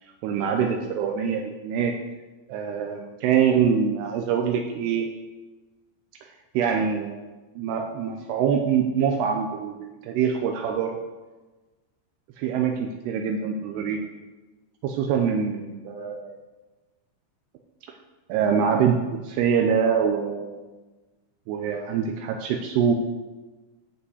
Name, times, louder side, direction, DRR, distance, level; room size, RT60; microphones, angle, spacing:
voice 1, 0.2-1.9 2.5-5.1 6.5-7.2 7.6-11.0 12.4-14.0 14.8-16.4 18.3-20.6 21.5-22.9, right 7 dB, 85° right, 4 dB, 2.4 m, -24 dB
8.6 x 5.6 x 7.8 m, 1.2 s
omnidirectional pair, 5.4 m